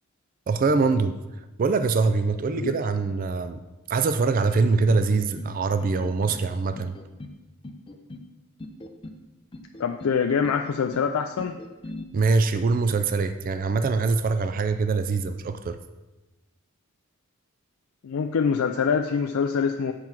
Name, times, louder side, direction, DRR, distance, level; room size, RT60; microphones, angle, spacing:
voice 1, 0.5-1.2 1.6-3.6 3.9-7.0 12.1-15.8, right 4 dB, 40° right, 10 dB, 0.3 m, -23 dB
sound 1, 4.9-5.5 5.8-6.4 6.7-7.4 7.6-8.3 8.6-9.2 9.5-10.1 10.4-11.1 11.4-12.0, left 1 dB, 25° left, 0.5 m, -40 dB
voice 2, 9.8-11.6 18.0-19.9, left 6 dB, 80° left, 5 dB, 0.4 m, -25 dB
7.6 x 4.6 x 5.9 m, 1.1 s
head